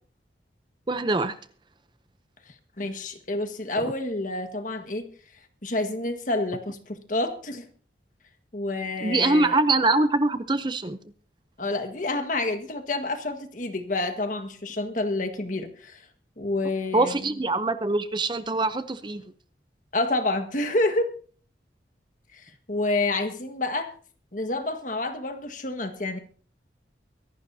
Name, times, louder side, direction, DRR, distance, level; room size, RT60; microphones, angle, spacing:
voice 1, 0.9-1.4 9.0-11.0 16.9-19.2, right 2 dB, 25° right, 11 dB, 0.6 m, -23 dB
voice 2, 2.8-5.1 5.6-7.6 8.5-9.5 11.6-16.0 16.4-17.2 19.9-21.1 22.4-23.9 24.3-26.2, left 2 dB, 45° left, 6 dB, 1.6 m, -28 dB
24.0 x 11.5 x 2.8 m, 0.43 s
head